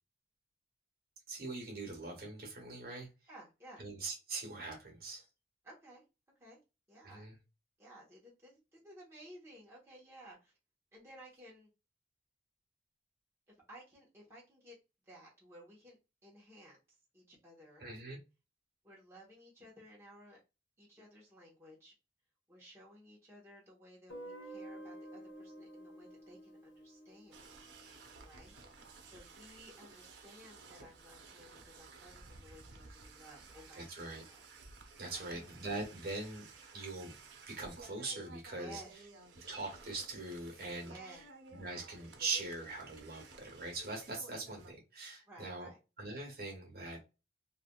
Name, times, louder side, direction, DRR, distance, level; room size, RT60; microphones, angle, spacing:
voice 1, 1.3-3.1 3.8-5.2 7.0-7.3 17.8-18.2 33.7-34.2 35.0-36.5 36.7-37.1 37.5-38.8 39.5-41.2 41.5-45.7 46.0-47.0, right 3 dB, 55° right, 1.3 m, -42 dB
voice 2, 3.3-3.8 5.6-6.0 6.4-6.6 6.9-7.3 7.8-10.5 10.9-11.7 13.5-14.8 15.1-16.8 17.1-17.8 18.8-20.4 20.8-21.9 22.5-27.5 28.3-28.5 29.1-34.4 35.1-35.4 38.5-38.9 40.8-41.2 45.3-45.8, right 1 dB, 15° right, 1.0 m, -56 dB
Guitar, 24.1-29.0, right 1 dB, 90° left, 1.0 m, -51 dB
sound 1, 27.3-44.7, right 3 dB, 90° right, 0.6 m, -55 dB
3.2 x 2.4 x 2.3 m
head